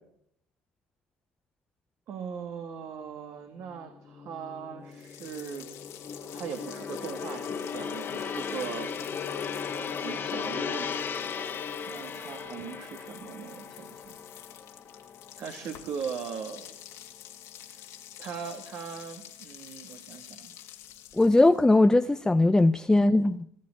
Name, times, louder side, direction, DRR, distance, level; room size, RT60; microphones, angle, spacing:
voice 1, 2.1-5.7 6.3-8.9 10.0-10.9 11.9-14.2 15.4-16.7 17.6-17.8 18.2-20.5, right 7 dB, 55° right, 2.0 m, -39 dB
Gong, 3.7-16.1 16.5-16.7, left 6 dB, 40° left, 1.8 m, -37 dB
sound 1, 4.9-21.7, left 12 dB, 65° left, 2.2 m, -49 dB
voice 2, 21.1-23.5, left 2 dB, 10° left, 0.6 m, -20 dB
19.0 x 7.5 x 9.1 m
hypercardioid pair, 75°, 6 cm